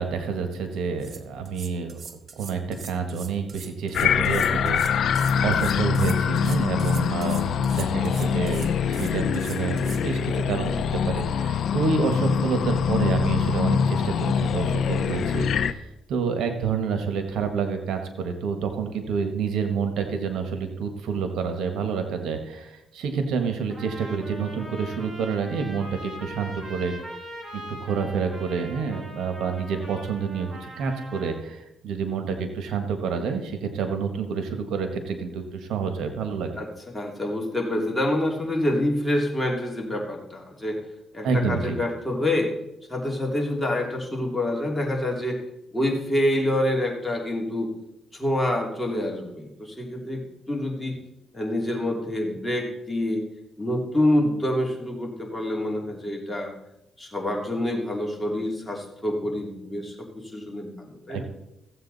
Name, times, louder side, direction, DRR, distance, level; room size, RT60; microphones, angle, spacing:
voice 1, 0.0-2.0 2.4-26.9 27.5-36.6 41.2-41.8 61.1-61.2, right 5 dB, 80° right, 6 dB, 1.5 m, -28 dB
sound 1, 0.7-0.8 1.0-10.0, right 5 dB, 50° right, 1.0 m, -42 dB
sound 2, 3.9-15.7, left 7 dB, 65° left, 0.6 m, -24 dB
Trumpet, 23.7-31.4, right 1 dB, 30° right, 2.9 m, -41 dB
voice 2, 36.9-40.8 41.1-42.5 42.9-45.4 45.7-47.7 48.1-51.0 51.3-53.2 53.6-56.5 57.0-61.2, left 1 dB, 10° left, -1 dB, 2.9 m, -27 dB
15.5 x 8.0 x 4.1 m, 0.87 s
cardioid pair, 90°, 0 cm